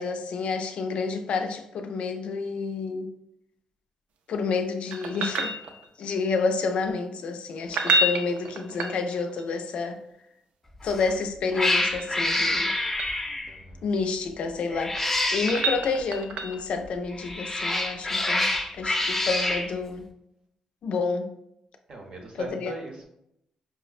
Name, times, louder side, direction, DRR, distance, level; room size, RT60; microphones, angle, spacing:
voice 1, 0.0-3.1 4.3-5.5 6.0-10.0 10.8-12.7 13.8-15.0 15.3-20.0 20.8-21.3 22.4-22.7, left 4 dB, 70° left, 6 dB, 0.4 m, -29 dB
sound 1, 4.9-6.1 7.6-9.4 11.6-13.2 14.6-16.7 19.5-19.6, right 2 dB, 90° right, 0.4 m, -29 dB
Cat, 10.8-11.1 11.5-13.6 14.7-15.8 17.1-19.7, left 2 dB, 15° left, 0.5 m, -27 dB
voice 2, 13.5-13.8 19.0-19.3 21.9-23.0, right 3 dB, 55° right, 1 dB, 0.8 m, -40 dB
4.8 x 2.0 x 2.4 m, 0.78 s
cardioid pair, 120°, 2 cm